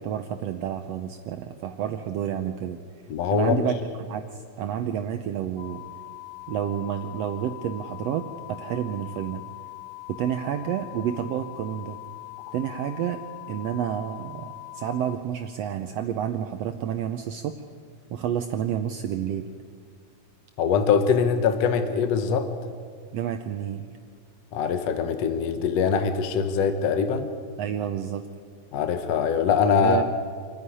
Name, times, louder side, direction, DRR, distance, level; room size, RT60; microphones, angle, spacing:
voice 1, 0.0-2.8 3.3-3.8 4.1-5.8 6.5-9.4 10.1-12.0 12.5-13.2 13.5-17.5 18.1-19.4 23.1-23.9 27.6-28.2 29.8-30.0, right 9 dB, 70° right, 7 dB, 1.7 m, -29 dB
voice 2, 3.1-3.6 20.6-22.5 24.5-27.3 28.7-30.0, left 6 dB, 65° left, 8 dB, 2.1 m, -23 dB
sound 1, 5.6-15.2, left 27 dB, 85° left, 2.4 m, -41 dB
27.0 x 10.0 x 9.8 m, 2.1 s
omnidirectional pair, 3.3 m